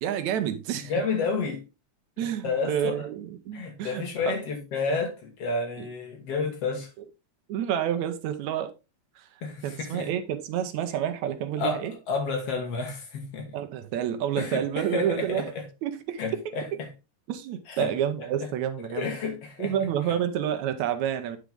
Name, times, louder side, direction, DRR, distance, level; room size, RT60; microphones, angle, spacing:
voice 1, 0.0-0.9 2.2-4.4 5.8-5.9 7.5-8.7 9.2-9.3 9.6-11.9 13.5-15.5 15.8-16.8 17.3-19.1 19.6-21.4, right 9 dB, 80° right, 2.0 m, -29 dB
voice 2, 0.8-1.6 2.4-3.1 3.5-6.9 9.4-10.1 11.6-11.8 12.1-13.5 14.4-15.6 16.2-16.9 17.7-17.9 18.4-18.5 18.9-19.7, left 4 dB, 60° left, 2.5 m, -30 dB
9.2 x 4.8 x 3.6 m
omnidirectional pair, 3.4 m